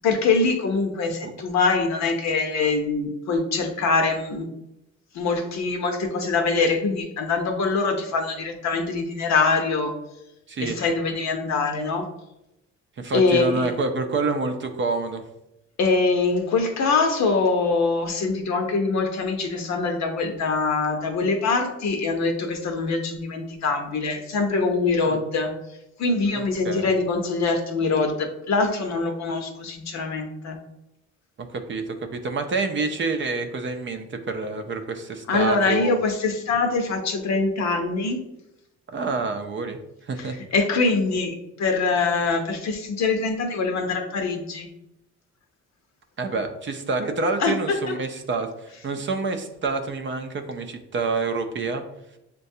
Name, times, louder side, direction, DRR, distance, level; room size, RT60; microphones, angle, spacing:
voice 1, 0.0-4.5 5.1-9.9 10.6-12.0 13.1-13.7 15.8-25.5 26.0-30.6 35.3-38.2 40.2-44.7 47.4-47.5, left 4 dB, 60° left, 4 dB, 0.8 m, -23 dB
voice 2, 10.5-10.8 13.0-15.2 25.0-25.2 26.3-26.9 31.5-35.9 38.9-40.4 46.2-51.8, right 3 dB, 40° right, 6 dB, 0.5 m, -28 dB
6.4 x 2.3 x 2.7 m, 0.87 s
cardioid pair, 90°, 30 cm